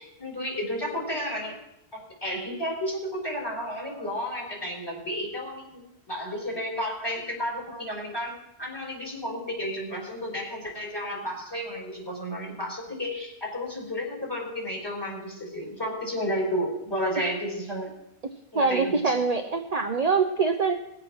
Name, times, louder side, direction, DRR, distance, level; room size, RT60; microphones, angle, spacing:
voice 1, 0.0-1.6 1.9-17.9 18.5-19.2, equal, 20° left, -2 dB, 4.5 m, -32 dB
voice 2, 18.5-20.7, right 4 dB, 40° right, 5 dB, 0.8 m, -24 dB
20.0 x 7.6 x 6.0 m, 0.85 s
omnidirectional pair, 1.1 m